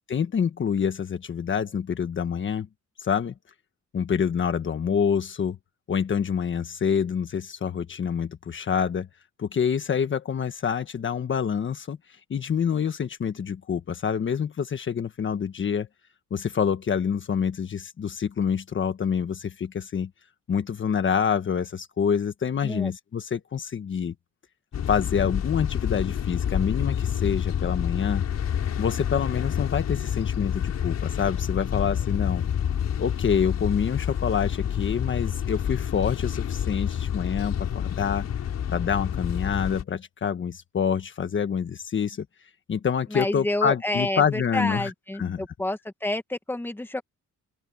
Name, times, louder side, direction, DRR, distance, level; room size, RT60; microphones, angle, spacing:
voice 1, 0.1-2.7 3.0-3.3 3.9-5.6 5.9-9.1 9.4-12.0 12.3-15.9 16.3-20.1 20.5-24.1 24.9-28.2 28.8-32.4 33.0-38.3 38.7-42.2 42.7-44.9 45.2-45.5, left 7 dB, 40° left, 1.4 m, -27 dB
sound 1, 24.7-39.8, left 9 dB, 55° left, 5.3 m, -28 dB
voice 2, 43.1-47.0, left 1 dB, 5° left, 1.5 m, -29 dB
open air
cardioid pair, 150°, 31 cm